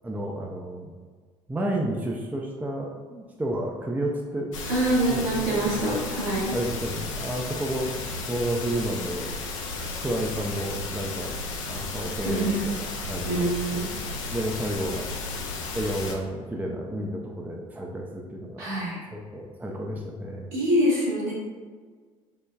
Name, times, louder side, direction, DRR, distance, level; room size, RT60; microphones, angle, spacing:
voice 1, 0.0-1.0 1.5-4.5 5.1-6.0 6.5-8.0 8.3-9.3 10.0-11.3 11.7-12.7 13.1-13.9 14.3-15.1 15.7-18.6 19.1-20.5, right 1 dB, 10° right, 0 dB, 0.4 m, -31 dB
sound 1, 4.5-16.1, left 3 dB, 80° left, 0.5 m, -34 dB
voice 2, 4.7-6.5 12.2-12.8 13.2-13.9 18.6-19.0 20.5-21.3, right 1 dB, 65° right, -6 dB, 1.4 m, -25 dB
4.7 x 2.1 x 2.3 m, 1.5 s
figure-of-eight pair, 55°, 17 cm